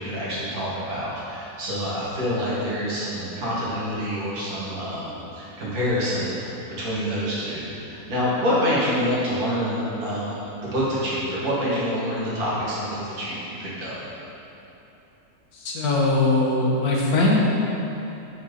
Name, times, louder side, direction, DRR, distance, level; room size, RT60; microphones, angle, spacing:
voice 1, 0.0-13.9, equal, 75° right, -8 dB, 2.1 m, -27 dB
voice 2, 15.5-17.4, left 2 dB, 85° left, -3 dB, 1.5 m, -21 dB
5.9 x 4.2 x 5.0 m, 2.9 s
omnidirectional pair, 1.6 m